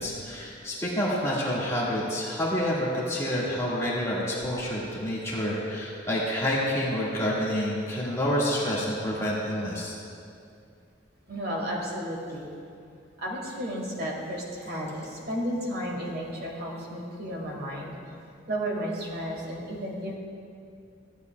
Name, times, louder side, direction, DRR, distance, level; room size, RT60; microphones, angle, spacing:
voice 1, 0.0-9.9, equal, 15° left, -7 dB, 1.8 m, -28 dB
voice 2, 11.3-12.5 13.2-18.0 18.5-20.2, equal, 55° right, -2 dB, 2.0 m, -33 dB
15.0 x 9.6 x 2.3 m, 2.4 s
head